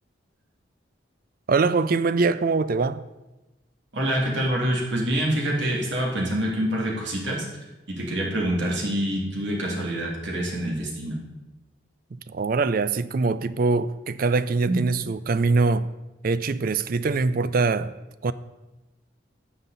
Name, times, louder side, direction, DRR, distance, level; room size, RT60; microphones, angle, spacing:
voice 1, 1.5-3.0 12.1-15.9 16.2-17.9 18.2-18.3, right 4 dB, 45° right, 0.4 m, -23 dB
voice 2, 3.9-7.4 7.9-11.2 14.7-14.9, right 1 dB, 65° right, 2.5 m, -26 dB
12.5 x 7.5 x 4.0 m
head